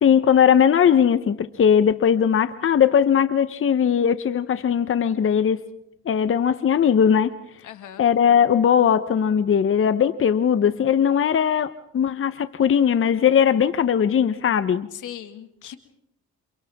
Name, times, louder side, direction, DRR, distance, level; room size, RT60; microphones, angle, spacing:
voice 1, 0.0-5.6 6.1-7.3 8.0-14.9, left 8 dB, 45° left, 12 dB, 0.9 m, -19 dB
voice 2, 7.6-8.1 14.9-15.8, left 10 dB, 80° left, 8 dB, 2.0 m, -38 dB
29.0 x 27.0 x 3.6 m, 0.80 s
cardioid pair, 90°, 30 cm